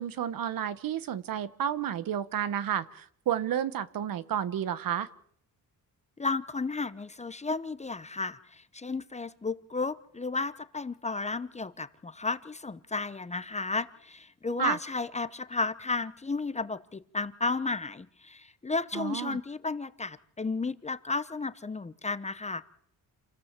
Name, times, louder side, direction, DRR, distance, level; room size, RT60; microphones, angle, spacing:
voice 1, 0.0-5.1 14.6-14.8 18.9-19.4, right 9 dB, 65° right, 15 dB, 1.3 m, -31 dB
voice 2, 6.2-22.6, left 3 dB, 20° left, 13 dB, 0.8 m, -33 dB
28.0 x 17.0 x 7.5 m, 0.66 s
cardioid pair, 140°, 36 cm